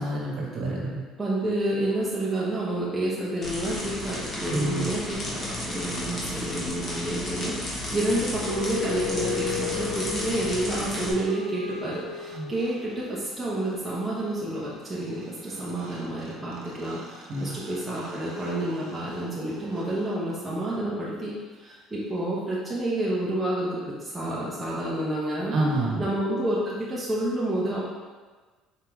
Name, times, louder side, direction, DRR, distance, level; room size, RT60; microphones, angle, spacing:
voice 1, 0.0-1.0 4.5-4.9 12.3-12.5 17.3-17.5 25.5-26.1, right 1 dB, 50° right, -5 dB, 1.5 m, -28 dB
voice 2, 1.2-25.5 26.0-27.8, right 1 dB, 10° right, -7 dB, 0.8 m, -29 dB
sound 1, 3.4-11.1, left 1 dB, 30° left, 1.2 m, -33 dB
sound 2, 8.1-13.3 15.2-15.3 15.5-21.0, left 7 dB, 75° right, 0.7 m, -37 dB
4.4 x 2.8 x 3.8 m, 1.3 s
cardioid pair, 125°, 0 cm